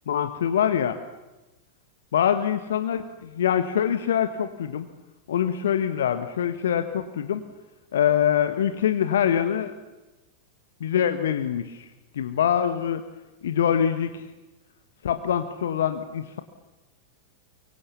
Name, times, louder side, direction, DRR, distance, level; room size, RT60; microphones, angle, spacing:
voice 1, 0.1-1.0 2.1-4.9 5.3-7.4 7.9-9.7 10.8-11.9 12.1-13.0 13.4-14.2 15.0-16.4, left 9 dB, 60° left, 10 dB, 1.3 m, -24 dB
24.5 x 23.5 x 8.4 m, 1.1 s
figure-of-eight pair, 90°, 0 cm